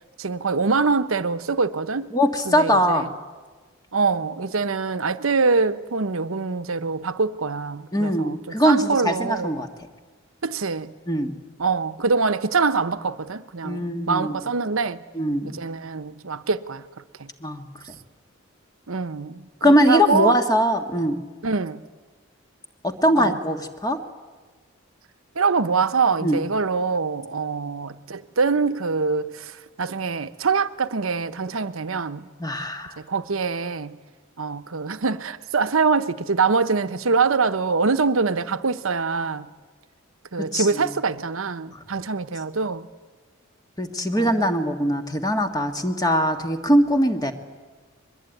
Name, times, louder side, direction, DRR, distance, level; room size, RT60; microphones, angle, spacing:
voice 1, 0.2-2.1 2.5-3.1 3.9-8.4 8.6-9.5 10.4-10.9 11.6-15.0 15.5-16.9 17.2-17.3 18.9-20.4 21.4-21.8 23.2-23.4 25.4-32.3 33.1-34.0 34.4-39.5 40.3-42.9 44.1-44.5, right 4 dB, 85° right, 1.0 m, -24 dB
voice 2, 2.1-3.2 7.9-9.7 11.1-11.4 13.6-14.4 15.1-15.6 17.4-17.9 19.6-21.2 22.8-24.0 26.2-26.4 32.4-33.0 40.4-40.9 41.7-41.8 43.8-47.3, equal, 20° left, 1.7 m, -22 dB
22.5 x 22.0 x 9.2 m
head